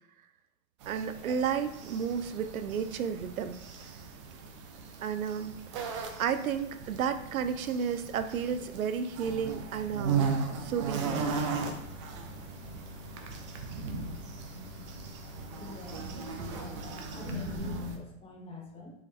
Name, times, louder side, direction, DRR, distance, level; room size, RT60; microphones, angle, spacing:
sound 1, 0.8-18.0, right 5 dB, 25° right, 0.3 m, -37 dB
voice 1, 0.9-3.6 5.0-5.6 6.2-10.3 10.6-11.3, right 7 dB, 85° right, 10 dB, 0.6 m, -32 dB
sound 2, 11.6-17.6, left 2 dB, 85° left, 1.6 m, -49 dB
voice 2, 15.6-18.9, left 2 dB, 15° left, -1 dB, 0.9 m, -47 dB
4.6 x 3.1 x 3.6 m, 0.81 s
hypercardioid pair, 125°, 41 cm